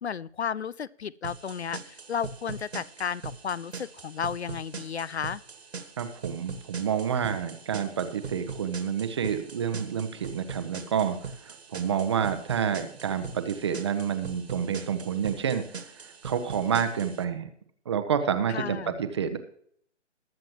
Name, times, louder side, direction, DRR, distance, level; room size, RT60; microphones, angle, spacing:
voice 1, 0.0-5.4 18.5-18.9, left 7 dB, 65° left, 22 dB, 0.5 m, -33 dB
sound 1, 1.2-17.2, right 5 dB, 60° right, 1.9 m, -41 dB
voice 2, 6.0-15.6 16.0-17.5 17.9-19.4, right 7 dB, 25° right, 9 dB, 0.8 m, -29 dB
21.5 x 7.5 x 3.0 m, 0.63 s
figure-of-eight pair, 145°, 36 cm